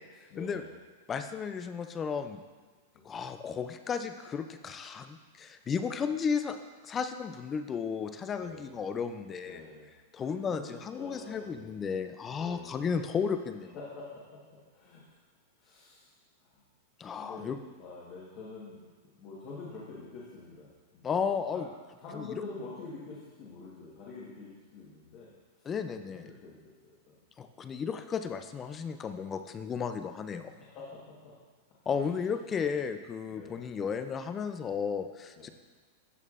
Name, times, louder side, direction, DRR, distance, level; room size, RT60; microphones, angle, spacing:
voice 1, 0.3-0.7 2.9-3.2 8.4-8.7 9.4-9.9 10.2-11.9 12.3-12.9 13.7-15.2 15.6-16.6 17.2-18.8 19.2-21.7 22.0-25.7 26.1-27.2 27.6-27.8 29.5-29.6 30.4-31.4 31.9-32.1 33.3-33.6 35.3-35.4, left 3 dB, 35° left, -7 dB, 1.2 m, -47 dB
voice 2, 1.1-2.4 3.1-6.6 6.8-9.6 10.1-13.7 17.0-17.6 21.0-21.6 22.2-22.3 25.7-26.2 27.4-30.5 31.9-35.5, left 6 dB, 15° left, 9 dB, 0.3 m, -34 dB
13.0 x 4.5 x 2.4 m, 1.4 s
supercardioid pair, 170°, 0 cm